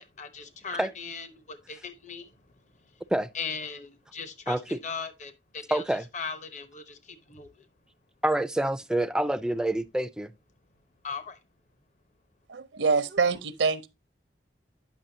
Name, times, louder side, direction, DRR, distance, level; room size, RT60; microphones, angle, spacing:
voice 1, 0.0-2.3 3.3-5.8 6.1-7.6 11.0-11.4, left 5 dB, 40° left, 0.9 m, -38 dB
voice 2, 4.5-4.8 5.7-6.1 8.2-10.3, right 1 dB, 5° right, 0.3 m, -27 dB
voice 3, 12.5-13.9, right 4 dB, 85° right, 0.7 m, -25 dB
8.8 x 5.9 x 2.7 m
head